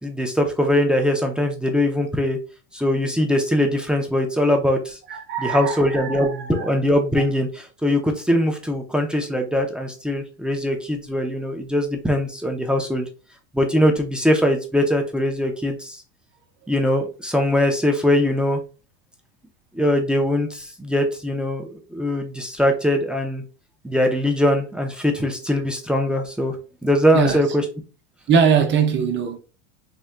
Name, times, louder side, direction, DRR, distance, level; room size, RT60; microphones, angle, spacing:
voice 1, 0.0-2.4 2.7-5.0 5.4-13.1 13.5-16.0 16.7-18.6 19.7-23.4 23.8-26.6 26.8-27.6, left 1 dB, 5° right, 0.7 m, -21 dB
voice 2, 5.1-6.7 27.1-27.4 28.3-29.4, right 6 dB, 30° right, 0.9 m, -21 dB
4.1 x 3.7 x 2.2 m
hypercardioid pair, 105°, 36 cm